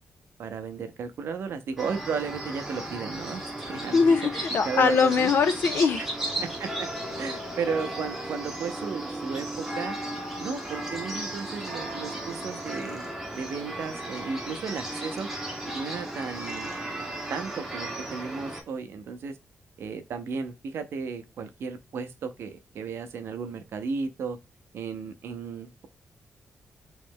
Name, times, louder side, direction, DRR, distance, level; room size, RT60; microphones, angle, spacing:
voice 1, 0.4-4.3 4.6-5.3 6.0-6.1 6.4-6.9 7.2-10.0 10.4-15.3 15.7-16.7 17.3-19.4 19.8-24.4 24.7-25.9, right 5 dB, 70° right, 0.6 m, -34 dB
sound 1, 1.8-18.6, right 1 dB, 5° right, 0.9 m, -35 dB
voice 2, 3.9-6.0, left 5 dB, 55° left, 0.4 m, -22 dB
3.1 x 3.1 x 3.5 m
wide cardioid pair, 170°, 4 cm